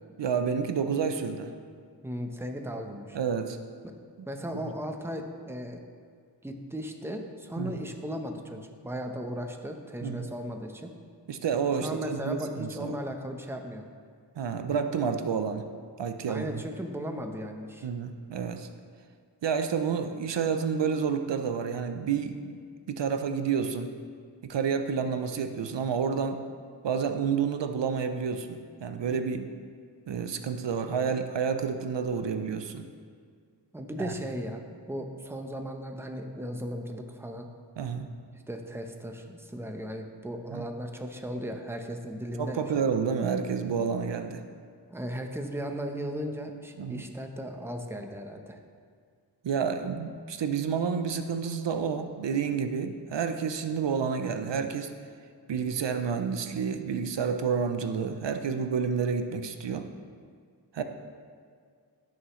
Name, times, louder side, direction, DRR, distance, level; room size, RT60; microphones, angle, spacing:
voice 1, 0.2-1.5 3.1-3.6 7.6-7.8 10.0-10.3 11.3-13.0 14.4-15.7 16.0-16.6 17.8-18.7 19.4-22.6 22.9-23.9 24.4-26.4 26.8-29.5 30.1-32.9 34.0-34.1 37.8-38.1 40.5-40.7 42.4-44.4 46.8-47.1 49.4-54.9 55.5-59.9 60.7-60.8, right 6 dB, 75° right, 8 dB, 0.7 m, -29 dB
voice 2, 2.0-3.2 3.8-3.9 4.2-5.8 6.4-10.9 11.8-13.8 16.2-17.9 33.7-37.5 38.5-42.9 44.9-48.6, equal, 5° right, 4 dB, 0.8 m, -36 dB
16.5 x 6.6 x 3.1 m, 2.1 s
wide cardioid pair, 85°, 43 cm